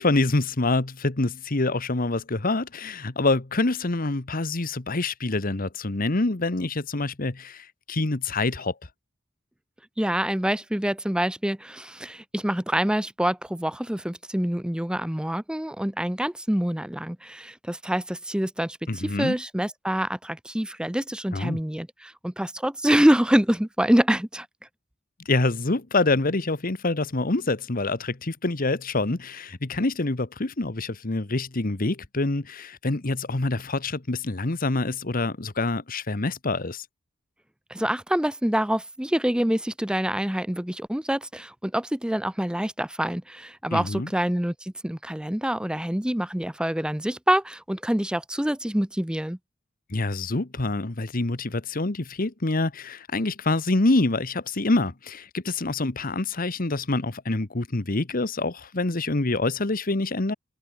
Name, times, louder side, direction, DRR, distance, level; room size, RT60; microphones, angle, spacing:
voice 1, 0.0-8.7 18.9-19.4 21.3-21.6 25.2-36.8 43.7-44.1 49.9-60.3, left 2 dB, 45° left, 1.3 m, -26 dB
voice 2, 10.0-24.5 37.7-49.4, equal, 5° right, 0.6 m, -26 dB
head